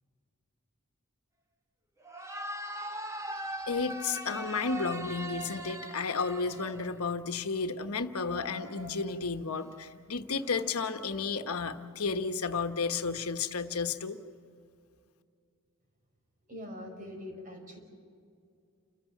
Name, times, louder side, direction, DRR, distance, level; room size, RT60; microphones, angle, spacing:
sound 1, 2.0-7.2 8.2-9.4 10.3-10.7, right 1 dB, 15° right, 1.2 m, -41 dB
voice 1, 3.7-14.2, left 4 dB, 80° left, 8 dB, 1.2 m, -32 dB
voice 2, 16.5-17.8, left 1 dB, 40° right, 2 dB, 5.3 m, -43 dB
30.0 x 15.0 x 7.4 m, 2.3 s
head